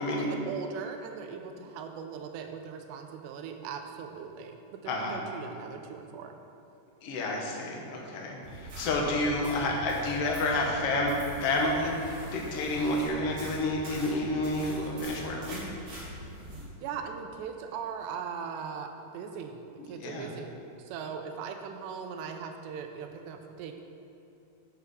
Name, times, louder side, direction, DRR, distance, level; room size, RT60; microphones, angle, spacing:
voice 1, 0.0-6.3 16.6-23.8, right 6 dB, 85° right, 5 dB, 2.9 m, -39 dB
voice 2, 4.9-5.2 7.0-11.1 11.4-15.6 19.8-20.3, left 2 dB, 75° left, -1 dB, 1.3 m, -30 dB
sound 1, 8.4-16.6, right 1 dB, 45° right, 3.9 m, -42 dB
10.0 x 7.0 x 6.4 m, 2.8 s
omnidirectional pair, 4.9 m